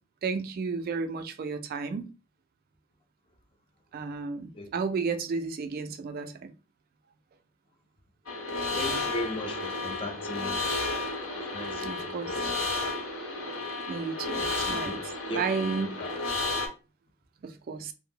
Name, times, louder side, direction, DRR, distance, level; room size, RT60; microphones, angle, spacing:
voice 1, 0.2-2.1 3.9-6.5 8.5-8.6 11.8-12.4 13.9-16.0 17.4-17.9, right 5 dB, 45° right, 0.3 m, -33 dB
sound 1, 8.3-16.7, left 3 dB, 85° left, 1.0 m, -32 dB
voice 2, 8.7-10.7 11.5-12.5 14.7-15.0 15.3-16.1, left 2 dB, 25° left, 0.4 m, -37 dB
2.6 x 2.0 x 3.5 m
head